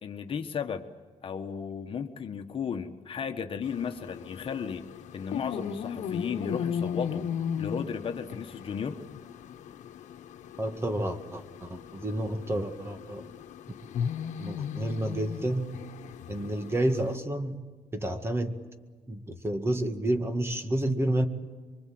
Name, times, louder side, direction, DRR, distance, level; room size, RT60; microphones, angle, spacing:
voice 1, 0.0-0.9 1.2-4.8 5.1-7.2 7.6-9.0, left 6 dB, 45° left, 6 dB, 1.4 m, -34 dB
sound 1, 3.6-17.1, left 8 dB, 85° left, 1.2 m, -37 dB
voice 2, 10.6-13.3 14.4-15.7 16.3-17.6 17.9-18.6 19.1-21.3, right 1 dB, 20° right, 7 dB, 1.9 m, -30 dB
24.5 x 24.5 x 7.8 m, 1.4 s
cardioid pair, 125°, 12 cm